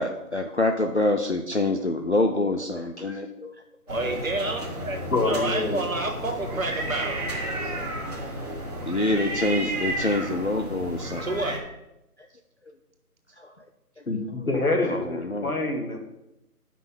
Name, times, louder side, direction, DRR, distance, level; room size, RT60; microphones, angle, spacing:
voice 1, 0.0-3.5 8.9-11.3 13.4-13.5 14.8-15.5, left 2 dB, 45° left, 4 dB, 0.6 m, -26 dB
sound 1, 3.9-11.6, right 1 dB, 25° right, 1.6 m, -32 dB
voice 2, 3.9-7.7 11.2-11.7, right 2 dB, 60° right, 4 dB, 1.5 m, -30 dB
voice 3, 5.1-5.8 14.1-16.0, left 2 dB, 65° left, 2 dB, 2.0 m, -26 dB
8.7 x 5.9 x 5.4 m, 0.90 s
figure-of-eight pair, 175°, 46 cm